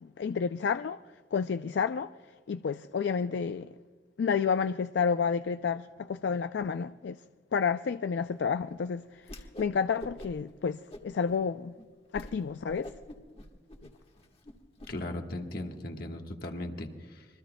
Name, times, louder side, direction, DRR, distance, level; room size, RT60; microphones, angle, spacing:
voice 1, 0.0-1.0 1.3-2.1 2.5-3.7 4.2-7.2 7.5-11.7 12.1-12.9, left 6 dB, 75° left, 0.4 m, -30 dB
Whoosh swoosh swish, 9.2-9.7 10.0-10.5 10.9-11.4 11.8-11.9 12.1-12.3 12.7-14.9, left 1 dB, 35° left, 1.3 m, -45 dB
voice 2, 14.9-17.3, left 1 dB, 55° left, 1.4 m, -38 dB
26.0 x 22.5 x 2.2 m
head